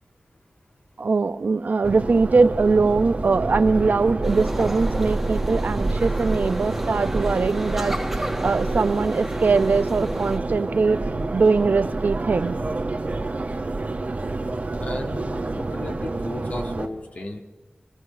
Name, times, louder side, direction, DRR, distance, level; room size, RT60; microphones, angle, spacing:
voice 1, 1.0-11.0 11.3-12.6, right 4 dB, 80° right, 11 dB, 0.8 m, -21 dB
Subway metro underground, 1.8-16.9, right 2 dB, 60° right, 1.6 m, -28 dB
sound 1, 4.2-10.4, right 1 dB, 5° right, 1.6 m, -33 dB
voice 2, 14.8-17.4, left 2 dB, 60° left, 1 dB, 1.8 m, -34 dB
25.0 x 16.0 x 6.7 m, 1.2 s
wide cardioid pair, 75°, 3 cm